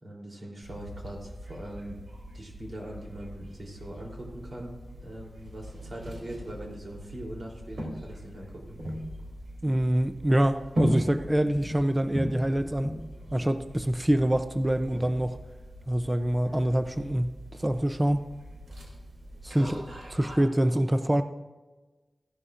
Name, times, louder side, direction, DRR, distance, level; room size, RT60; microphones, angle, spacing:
voice 1, 0.0-2.0 2.3-4.7 5.0-8.8 19.6-19.8, right 1 dB, 55° right, -1 dB, 3.4 m, -41 dB
sound 1, 0.6-20.4, equal, 70° right, 3.1 m, -39 dB
voice 2, 9.6-12.9 13.3-15.4 15.9-18.2 19.4-19.8 20.2-21.2, right 1 dB, 20° right, 9 dB, 0.5 m, -25 dB
16.0 x 11.0 x 2.5 m, 1.2 s
wide cardioid pair, 60°, 0 cm